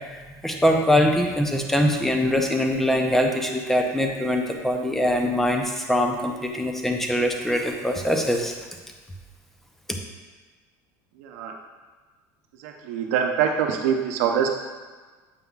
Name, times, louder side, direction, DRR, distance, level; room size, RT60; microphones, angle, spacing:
voice 1, 0.4-8.5 9.9-10.0, left 1 dB, 5° left, 2 dB, 0.6 m, -23 dB
voice 2, 11.2-11.6 12.6-14.5, right 8 dB, 85° right, 2 dB, 0.7 m, -24 dB
7.6 x 5.4 x 2.4 m, 1.3 s
cardioid pair, 140°, 8 cm